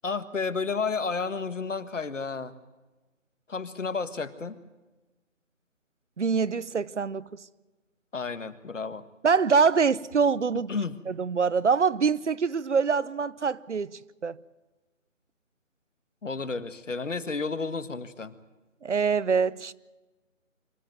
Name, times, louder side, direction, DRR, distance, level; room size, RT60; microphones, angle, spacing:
voice 1, 0.0-2.5 3.5-4.6 8.1-9.0 10.7-11.0 16.2-18.4, left 4 dB, 70° left, 1.8 m, -31 dB
voice 2, 6.2-7.2 9.2-10.7 11.1-14.4 18.8-19.7, right 5 dB, 65° right, 0.9 m, -24 dB
26.0 x 14.5 x 9.4 m
figure-of-eight pair, 165°, 39 cm